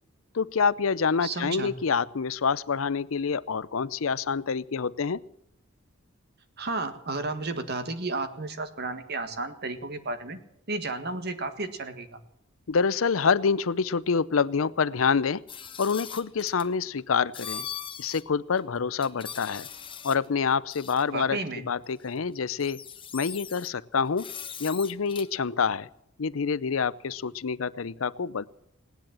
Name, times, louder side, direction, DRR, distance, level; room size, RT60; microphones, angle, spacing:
voice 1, 0.3-5.2 12.7-15.4 15.8-17.7 18.0-19.7 20.0-21.4 21.6-22.8 23.1-24.3 24.6-25.9 26.2-28.5, left 5 dB, 80° left, 18 dB, 0.6 m, -27 dB
voice 2, 1.2-1.7 6.6-10.4 10.7-12.2 21.1-21.6, right 3 dB, 55° right, 9 dB, 1.7 m, -32 dB
sound 1, 15.5-16.7 17.3-18.2 18.6-18.7 19.0-20.3 20.7-21.0 22.1-22.2 22.5-23.7 24.2-25.3, left 8 dB, 25° left, 1.1 m, -40 dB
18.0 x 10.5 x 7.5 m, 0.77 s
head